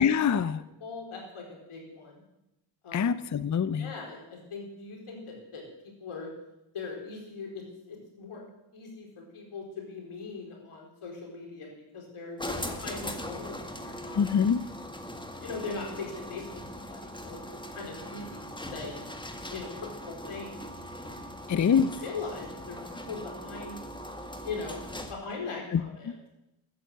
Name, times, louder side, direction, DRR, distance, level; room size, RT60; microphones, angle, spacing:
voice 1, 0.0-0.6 2.9-3.9 14.1-14.6 21.5-21.9 25.7-25.8, left 7 dB, 35° left, 16 dB, 0.6 m, -24 dB
voice 2, 0.5-2.2 2.8-3.1 3.8-5.6 6.0-6.3 6.7-8.4 8.7-11.7 11.9-14.3 15.4-16.4 16.7-17.4 17.7-19.0 19.5-20.7 21.0-21.3 22.0-23.8 24.4-24.8 25.1-26.3, left 4 dB, 90° left, 0 dB, 4.6 m, -40 dB
sound 1, 12.4-25.3, equal, 10° left, 1.7 m, -40 dB
13.5 x 9.7 x 8.1 m, 0.91 s
cardioid pair, 75°, 49 cm